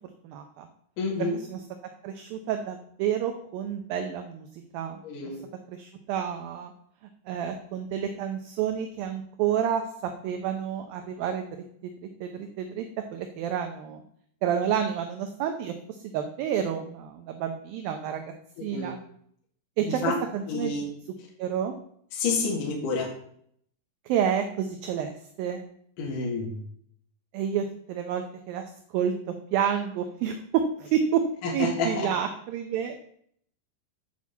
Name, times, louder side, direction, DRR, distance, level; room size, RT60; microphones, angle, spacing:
voice 1, 0.2-0.7 1.2-1.6 2.0-4.5 4.7-5.0 5.7-6.7 7.3-9.8 10.2-11.9 12.2-12.9 13.1-14.0 14.4-15.7 16.1-18.2 18.6-19.0 19.8-20.0 20.3-20.7 21.4-21.7 24.1-25.1 25.4-25.6 27.3-28.6 28.9-29.1 29.5-31.2 31.5-33.0, right 8 dB, 75° right, 5 dB, 2.3 m, -29 dB
voice 2, 1.0-1.4 5.0-5.4 18.7-18.9 19.9-20.1 20.5-20.9 22.1-23.1 26.0-26.5 31.6-31.9, left 4 dB, 55° left, -3 dB, 3.2 m, -28 dB
8.5 x 6.2 x 7.3 m, 0.65 s
omnidirectional pair, 4.8 m